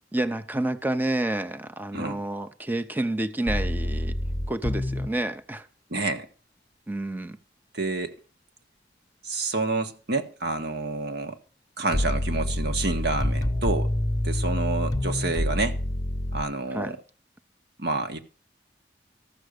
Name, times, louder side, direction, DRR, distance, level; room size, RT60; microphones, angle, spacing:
voice 1, 0.1-4.1 4.5-5.7 6.9-7.4 16.7-16.9, right 1 dB, 10° right, 0.6 m, -29 dB
sound 1, 3.5-5.1 11.9-16.4, left 1 dB, 20° left, 0.8 m, -27 dB
voice 2, 5.9-6.3 7.7-8.1 9.2-11.4 11.8-13.9 14.2-15.8 16.3-17.0 17.8-18.2, right 3 dB, 65° right, 1.5 m, -28 dB
14.0 x 6.3 x 6.6 m
head